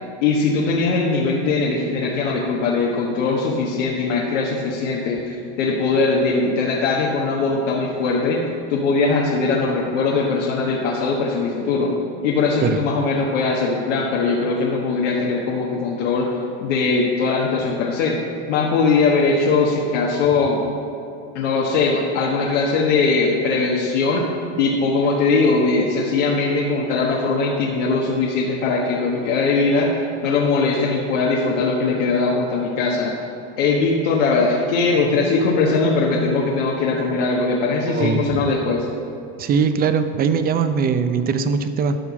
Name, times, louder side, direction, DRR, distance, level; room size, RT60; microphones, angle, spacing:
voice 1, 0.2-8.4 8.7-11.9 12.2-16.3 16.6-18.2 18.5-20.6 21.3-24.3 24.6-33.1 33.6-38.9, left 4 dB, 85° left, -3 dB, 1.3 m, -20 dB
voice 2, 37.9-38.5 39.4-42.0, right 6 dB, 25° right, 10 dB, 0.5 m, -21 dB
12.0 x 5.6 x 4.9 m, 2.6 s
supercardioid pair, 125°, 35 cm